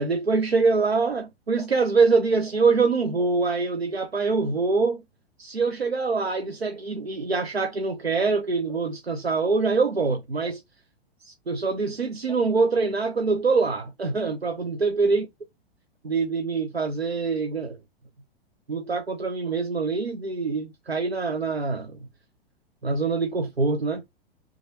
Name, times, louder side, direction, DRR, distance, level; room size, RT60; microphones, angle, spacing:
voice 1, 0.0-5.0 5.4-10.6 11.2-15.3 16.0-17.8 18.7-22.0 22.8-24.0, right 4 dB, 85° right, 0.7 m, -24 dB
5.7 x 2.6 x 2.8 m
figure-of-eight pair, 105°, 30 cm